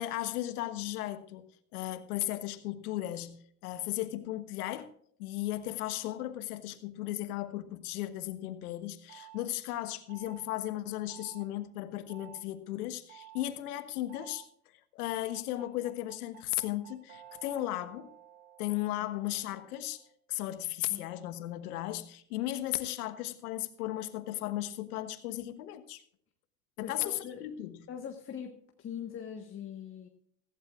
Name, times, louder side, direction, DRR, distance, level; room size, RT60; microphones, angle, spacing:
voice 1, 0.0-1.5 1.7-4.9 5.2-14.5 14.9-18.1 18.6-20.0 20.3-26.0 26.8-27.9, left 14 dB, 75° left, 1.4 m, -36 dB
sound 1, 9.1-9.4 10.1-10.5 11.1-11.5 12.1-12.4 13.1-13.4 14.1-14.5 15.1-20.2, right 12 dB, 75° right, 3.3 m, -53 dB
voice 2, 26.8-27.6 27.9-30.1, left 8 dB, 30° left, 1.4 m, -42 dB
15.5 x 15.5 x 2.5 m
hypercardioid pair, 105°, 45 cm